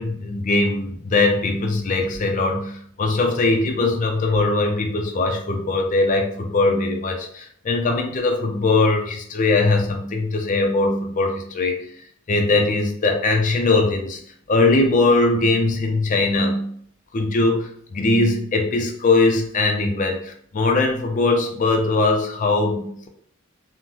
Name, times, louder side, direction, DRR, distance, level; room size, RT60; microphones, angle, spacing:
voice 1, 0.0-11.7 12.3-14.2 14.5-16.7 17.1-23.1, left 3 dB, 40° left, 3 dB, 0.4 m, -20 dB
3.7 x 2.1 x 2.9 m, 0.62 s
head